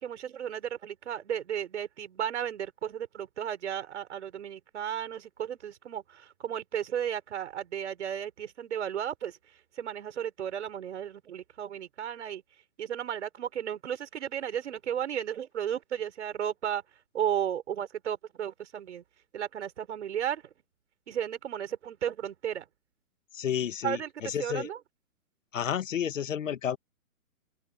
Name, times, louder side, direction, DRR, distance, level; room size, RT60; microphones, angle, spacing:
voice 1, 0.0-9.3 9.8-12.4 12.8-16.8 17.1-19.0 19.3-20.4 21.1-22.6 23.8-24.8, right 9 dB, 50° right, 5.8 m, -34 dB
voice 2, 23.3-24.7 25.5-26.8, left 9 dB, 60° left, 1.8 m, -31 dB
open air
hypercardioid pair, 165°, 43 cm